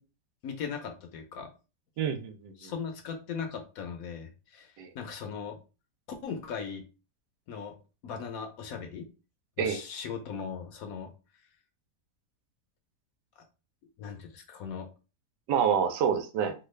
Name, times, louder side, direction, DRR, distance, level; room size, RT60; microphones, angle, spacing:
voice 1, 0.4-1.5 2.6-5.6 6.2-6.8 7.5-7.7 8.0-9.1 9.6-11.1 14.0-14.9, left 6 dB, 70° left, 0.9 m, -38 dB
voice 2, 2.0-2.7 4.8-4.9 9.6-9.8 15.5-16.5, right 7 dB, 85° right, 1.2 m, -27 dB
3.5 x 2.3 x 3.1 m
omnidirectional pair, 1.8 m